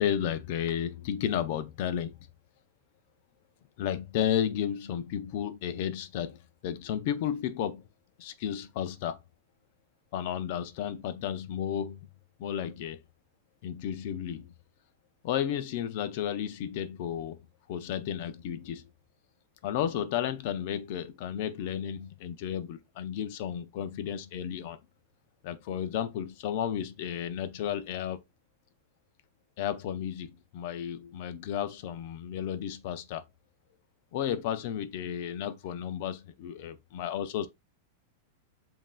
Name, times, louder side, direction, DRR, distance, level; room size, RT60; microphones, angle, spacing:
voice 1, 0.0-2.2 3.8-7.8 8.2-9.2 10.1-12.0 12.4-13.0 13.6-14.5 15.2-18.9 19.6-24.8 25.4-28.2 29.6-33.2 34.1-37.5, left 9 dB, 40° left, 0.4 m, -33 dB
7.4 x 2.5 x 2.3 m
supercardioid pair, 180°, 0 cm